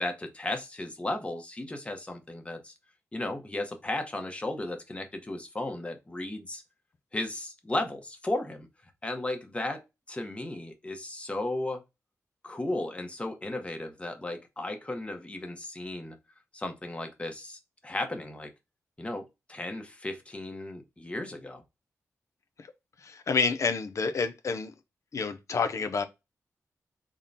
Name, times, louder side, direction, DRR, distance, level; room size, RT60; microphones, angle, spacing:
voice 1, 0.0-2.7 3.1-6.6 7.1-8.7 9.0-11.8 12.4-16.2 16.5-18.5 19.0-21.6, left 2 dB, 20° left, 0.8 m, -35 dB
voice 2, 23.0-24.7 25.1-26.0, left 5 dB, 60° left, 0.6 m, -29 dB
3.7 x 2.2 x 3.9 m
cardioid pair, 80°, 6 cm